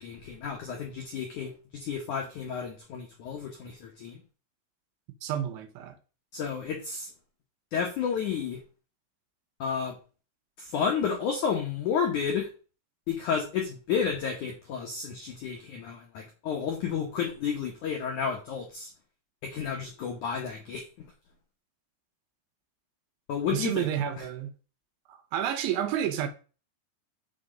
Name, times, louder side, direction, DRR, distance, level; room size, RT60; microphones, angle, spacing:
voice 1, 0.0-4.2 6.3-7.1 7.7-8.6 9.6-10.0 10.6-12.5 13.1-18.9 19.4-21.1 23.3-23.9 24.2-24.3, left 6 dB, 80° left, 1.7 m, -31 dB
voice 2, 5.2-6.0 23.5-24.5 25.1-26.3, right 10 dB, 85° right, 3.3 m, -30 dB
6.9 x 4.1 x 5.1 m
omnidirectional pair, 5.3 m